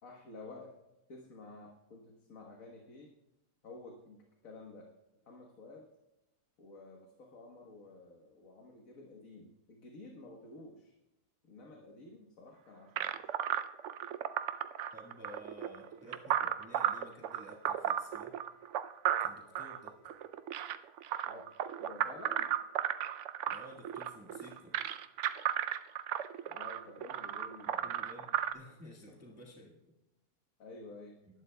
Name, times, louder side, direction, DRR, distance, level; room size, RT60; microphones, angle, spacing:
voice 1, 0.0-0.7 1.1-3.1 3.6-4.9 5.3-5.9 6.6-10.9 11.5-13.3 21.3-21.5 21.8-22.5 26.5-28.0 29.1-29.2 30.6-31.1, left 2 dB, 60° left, 0 dB, 1.6 m, -51 dB
sound 1, 13.0-28.5, right 10 dB, 70° right, 0.7 m, -35 dB
voice 2, 14.9-18.4 19.2-19.9 23.5-24.7 27.8-29.8, equal, 10° right, -3 dB, 1.4 m, -53 dB
19.5 x 11.5 x 2.2 m, 0.94 s
omnidirectional pair, 1.7 m